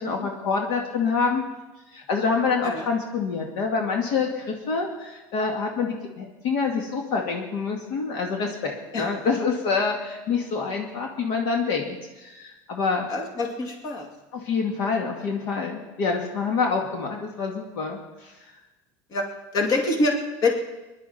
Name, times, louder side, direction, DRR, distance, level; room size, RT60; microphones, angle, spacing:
voice 1, 0.0-1.4 1.9-13.1 14.3-18.4, left 5 dB, 65° left, 1 dB, 2.2 m, -26 dB
voice 2, 13.1-14.1 15.2-15.3 19.1-19.2 19.5-20.5, left 2 dB, 40° left, 1 dB, 2.5 m, -25 dB
23.0 x 11.0 x 4.4 m, 1.1 s
cardioid pair, 150°, 10 cm